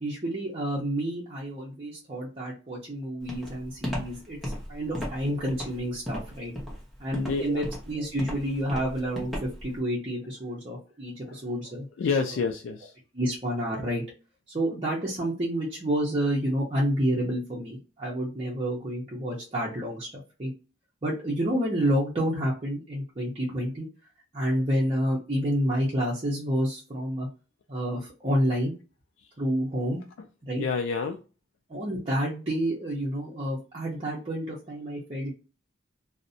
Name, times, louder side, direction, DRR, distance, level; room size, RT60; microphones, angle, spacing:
voice 1, 0.0-4.4 4.7-6.5 7.0-11.8 13.1-14.0 14.5-20.5 21.0-23.9 24.3-27.3 27.7-28.7 29.4-30.0 30.4-30.6 31.7-35.3, equal, 30° right, -5 dB, 0.6 m, -29 dB
Walk footsteps, 3.3-9.7, equal, ahead, 0.8 m, -35 dB
voice 2, 7.3-7.6 11.2-11.4 12.0-12.9 29.2-29.3 30.2-30.3 30.6-31.2, left 5 dB, 70° left, 4 dB, 0.3 m, -29 dB
2.5 x 2.0 x 2.5 m, 0.33 s
head